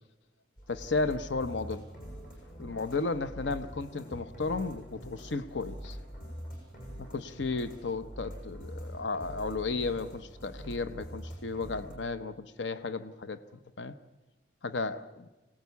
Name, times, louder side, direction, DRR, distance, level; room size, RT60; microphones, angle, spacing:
sound 1, 0.6-11.9, equal, 50° left, 7.9 m, -44 dB
voice 1, 0.7-1.9 2.6-6.0 7.0-13.4 13.8-13.9 14.6-15.3, left 3 dB, 75° left, 12 dB, 0.9 m, -34 dB
25.0 x 18.5 x 8.3 m, 1.1 s
head